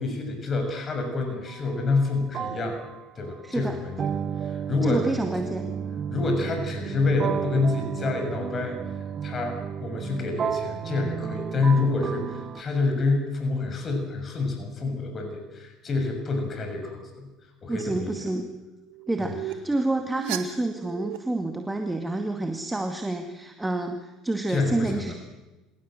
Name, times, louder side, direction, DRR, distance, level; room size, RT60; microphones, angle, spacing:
voice 1, 0.0-2.8 3.1-4.1 4.4-5.1 6.1-8.8 9.2-17.3 17.6-18.3 19.2-19.4 24.5-25.1, left 3 dB, 35° left, 5 dB, 6.6 m, -27 dB
sound 1, 1.5-1.7 2.3-12.6, right 7 dB, 40° right, 1.0 m, -33 dB
voice 2, 3.4-3.7 4.8-5.7 17.7-18.5 19.1-25.1, right 2 dB, 10° right, 5 dB, 2.2 m, -28 dB
sound 2, 17.7-17.8 18.8-21.2, right 17 dB, 75° right, 2.1 m, -36 dB
26.5 x 17.0 x 7.6 m, 1.1 s
hypercardioid pair, 75°, 0 cm